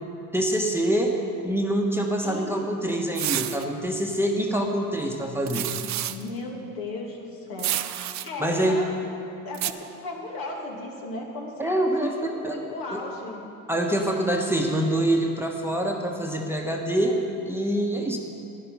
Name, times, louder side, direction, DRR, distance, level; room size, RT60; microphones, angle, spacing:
voice 1, 0.3-1.2 1.4-5.7 8.4-8.8 11.6-12.1 12.4-12.6 12.9-13.0 13.7-18.2, right 1 dB, 5° right, 0 dB, 1.2 m, -25 dB
voice 2, 2.2-2.7 6.1-8.9 9.4-13.4 13.9-14.1, left 2 dB, 60° left, -1 dB, 2.5 m, -36 dB
sound 1, 3.2-3.6 5.5-6.2 7.6-8.3 9.5-9.7, right 13 dB, 45° right, 0.6 m, -29 dB
11.0 x 10.0 x 5.5 m, 2.6 s
supercardioid pair, 80°, 40 cm